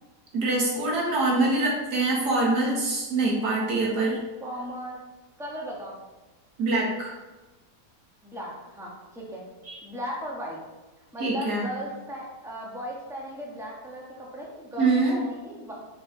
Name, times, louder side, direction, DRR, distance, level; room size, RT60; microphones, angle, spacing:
voice 1, 0.3-4.2 6.6-7.2 9.7-9.8 11.2-11.7 14.8-15.2, right 2 dB, 75° right, -2 dB, 2.2 m, -24 dB
voice 2, 4.4-5.0 5.4-6.0 8.2-9.4 9.8-10.6 11.1-15.7, equal, ahead, -3 dB, 1.5 m, -37 dB
6.7 x 6.0 x 4.0 m, 1.2 s
omnidirectional pair, 1.8 m